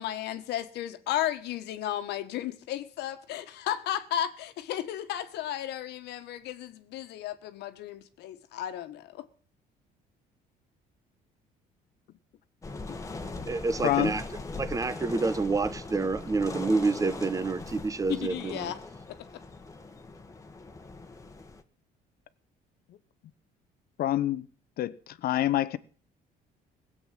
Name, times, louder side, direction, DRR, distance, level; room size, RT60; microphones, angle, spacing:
voice 1, 0.0-9.2 18.1-18.8 19.1-19.4, left 11 dB, 80° left, 1.5 m, -34 dB
sound 1, 12.6-21.6, left 3 dB, 20° left, 1.6 m, -40 dB
voice 2, 13.2-14.2 14.6-18.7, right 3 dB, 20° right, 1.1 m, -28 dB
voice 3, 13.8-14.1 24.0-24.4 24.8-25.8, left 13 dB, 65° left, 1.0 m, -26 dB
18.5 x 8.0 x 7.6 m
cardioid pair, 110°, 17 cm